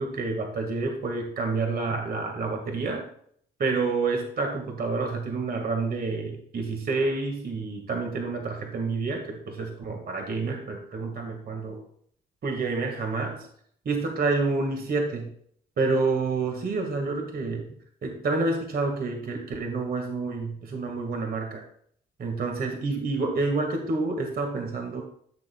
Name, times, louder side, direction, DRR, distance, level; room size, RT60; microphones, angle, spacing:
voice 1, 0.0-3.1 3.6-11.8 12.4-13.5 13.8-15.3 15.8-17.6 18.0-21.6 22.2-25.0, right 3 dB, 50° right, 3 dB, 1.7 m, -28 dB
13.5 x 6.7 x 2.3 m, 0.63 s
cardioid pair, 90°, 20 cm